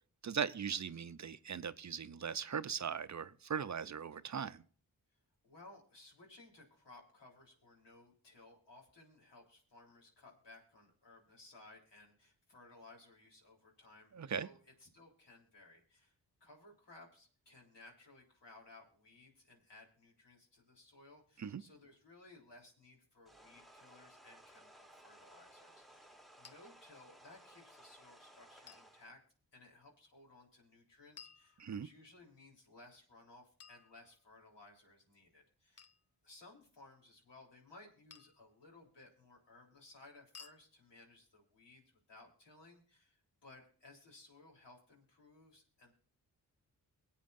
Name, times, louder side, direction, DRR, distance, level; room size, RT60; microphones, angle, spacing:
voice 1, 0.2-4.6 14.1-14.5 21.4-21.6 31.6-31.9, right 7 dB, 45° right, 14 dB, 0.6 m, -39 dB
voice 2, 5.4-16.1 16.4-29.2 29.5-35.9 36.2-45.9, left 2 dB, 80° left, -1 dB, 3.7 m, -60 dB
sound 1, 23.3-29.1, right 1 dB, ahead, 1.2 m, -60 dB
sound 2, 26.4-26.6 28.7-28.9 31.2-32.1 33.6-34.5 35.8-36.1 38.1-38.5 40.3-40.6, left 6 dB, 35° left, 0.9 m, -57 dB
23.5 x 8.5 x 2.5 m, 0.44 s
cardioid pair, 45°, 41 cm